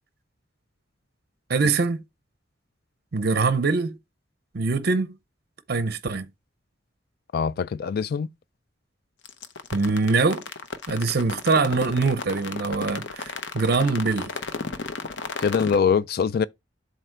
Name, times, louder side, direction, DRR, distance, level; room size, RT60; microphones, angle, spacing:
voice 1, 1.5-2.0 3.1-4.0 4.5-5.1 5.7-6.3 9.7-10.5 10.9-14.3, right 4 dB, 60° right, 0.6 m, -23 dB
voice 2, 7.3-8.3 15.4-16.5, left 6 dB, 55° left, 0.4 m, -23 dB
sound 1, 9.2-15.8, left 4 dB, 70° left, 0.8 m, -33 dB
7.6 x 2.8 x 4.4 m
head